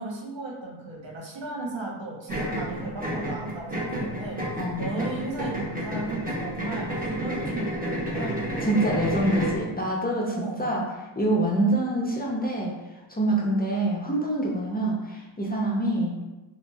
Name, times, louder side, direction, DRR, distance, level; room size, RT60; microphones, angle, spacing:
voice 1, 0.0-8.4 10.3-10.7, right 2 dB, 65° right, -3 dB, 0.8 m, -35 dB
sound 1, 2.3-9.6, equal, 20° right, 0.8 m, -31 dB
voice 2, 4.6-4.9 8.6-10.8 11.2-12.8 13.1-16.2, right 1 dB, 20° left, -3 dB, 0.5 m, -25 dB
3.0 x 2.5 x 2.2 m, 1.1 s
cardioid pair, 40°, 48 cm